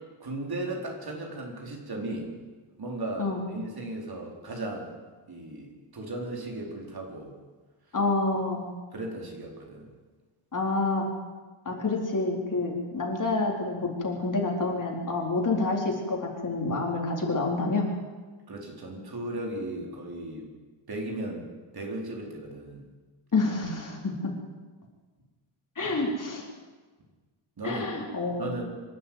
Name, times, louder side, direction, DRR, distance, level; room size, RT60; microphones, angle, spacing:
voice 1, 0.2-2.3 2.8-5.0 5.3-7.3 8.9-9.9 18.5-20.5 20.9-21.5 21.7-22.8 27.6-27.9 28.4-28.6, right 2 dB, 50° right, 0 dB, 4.5 m, -36 dB
voice 2, 7.9-8.6 10.5-11.1 11.6-17.9 23.3-24.3 25.8-26.4 27.6-28.5, left 3 dB, 40° left, 0 dB, 4.3 m, -28 dB
26.0 x 12.0 x 9.4 m, 1.3 s
wide cardioid pair, 145°, 49 cm